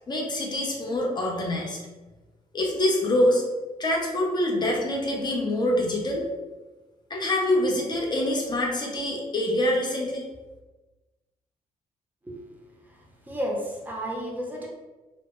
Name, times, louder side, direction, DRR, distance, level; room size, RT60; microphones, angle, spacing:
voice 1, 0.1-1.8 2.5-3.4 3.8-6.2 7.1-10.3, left 1 dB, 30° left, -1 dB, 0.6 m, -25 dB
voice 2, 12.9-14.7, equal, 10° right, -2 dB, 0.6 m, -32 dB
2.1 x 2.0 x 2.9 m, 1.2 s
cardioid pair, 90°, 15 cm